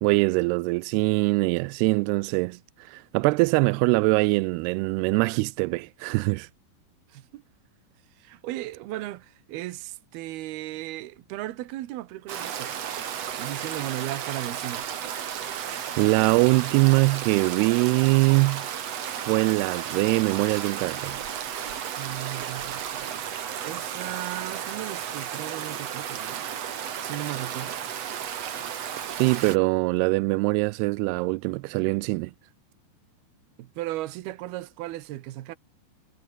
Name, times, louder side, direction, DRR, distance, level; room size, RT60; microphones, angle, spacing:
voice 1, 0.0-2.6 2.9-6.5 16.0-18.7 19.1-21.2 29.2-32.3, right 24 dB, 85° right, 2.3 m, -23 dB
voice 2, 7.1-7.4 8.2-12.8 13.3-14.9 22.0-23.1 23.6-27.8 33.6-35.6, right 15 dB, 70° right, 2.9 m, -36 dB
Stream, 12.3-29.6, right 9 dB, 50° right, 2.1 m, -33 dB
omnidirectional pair, 5.1 m